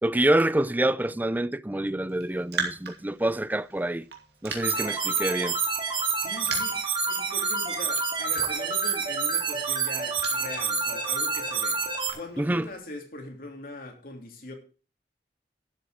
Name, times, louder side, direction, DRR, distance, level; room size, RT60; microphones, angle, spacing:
voice 1, 0.0-4.0 4.4-5.6 12.4-12.7, right 1 dB, 10° right, 0.4 m, -26 dB
Raindrop, 2.1-12.8, right 4 dB, 65° right, 2.7 m, -41 dB
sound 1, 4.6-12.1, right 5 dB, 30° right, 2.7 m, -28 dB
voice 2, 6.2-6.8 7.1-11.8 12.1-14.5, left 2 dB, 55° left, 3.0 m, -41 dB
12.0 x 7.9 x 5.0 m
head